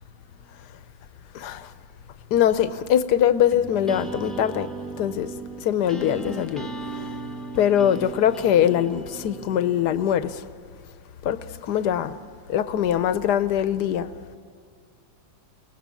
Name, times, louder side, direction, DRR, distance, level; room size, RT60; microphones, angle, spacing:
voice 1, 1.3-1.7 2.3-4.7 5.0-5.3 5.6-6.7 7.5-10.4 11.2-11.4 11.6-12.2 12.5-14.1, left 10 dB, 60° left, 1.2 m, -22 dB
sound 1, 3.5-10.3, right 3 dB, ahead, 0.6 m, -37 dB
29.5 x 19.0 x 8.4 m
omnidirectional pair, 2.4 m